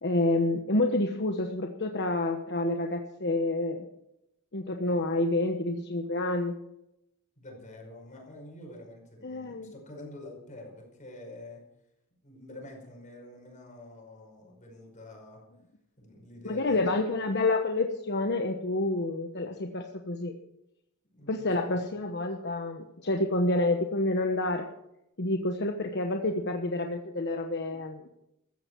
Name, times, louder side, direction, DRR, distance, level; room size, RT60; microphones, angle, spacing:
voice 1, 0.0-3.9 4.5-6.6 9.2-9.7 16.4-20.3 21.3-24.7 25.2-28.1, left 2 dB, 50° left, 3 dB, 1.2 m, -28 dB
voice 2, 7.4-11.6 12.2-15.4 16.0-16.8 21.1-21.8, left 1 dB, 35° left, 0 dB, 5.5 m, -47 dB
15.5 x 14.0 x 4.7 m, 0.83 s
head